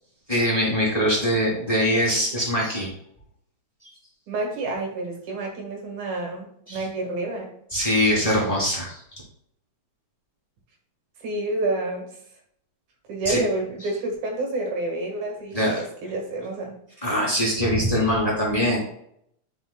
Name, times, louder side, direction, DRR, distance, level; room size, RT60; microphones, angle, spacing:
voice 1, 0.3-2.9 6.7-6.8 7.7-9.2 13.2-13.4 15.5-15.8 17.0-18.8, equal, 15° left, -5 dB, 2.4 m, -23 dB
voice 2, 4.3-7.5 11.2-12.1 13.1-16.7, right 2 dB, 80° right, 1 dB, 3.1 m, -29 dB
10.0 x 5.7 x 2.2 m, 0.70 s
omnidirectional pair, 3.3 m